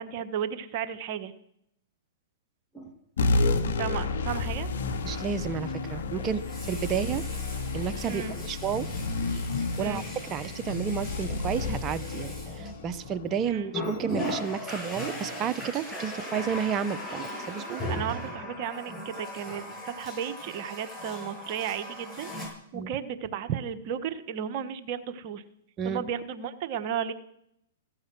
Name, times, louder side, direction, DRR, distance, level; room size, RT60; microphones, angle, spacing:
voice 1, 0.0-1.3 3.8-4.7 8.1-8.3 9.8-10.0 13.5-13.7 17.9-25.4 25.8-27.1, right 8 dB, 45° right, 9 dB, 1.3 m, -34 dB
Water tap faucet, 2.7-2.9 6.3-13.2 13.7-22.5, left 1 dB, 5° left, 7.7 m, -38 dB
sound 1, 3.2-14.0, left 3 dB, 75° left, 2.1 m, -31 dB
voice 2, 5.0-7.2 7.7-8.9 9.8-17.9 22.7-22.9 25.8-26.1, right 7 dB, 25° right, 13 dB, 1.0 m, -31 dB
15.5 x 14.0 x 6.2 m, 0.74 s
hypercardioid pair, 125°, 0 cm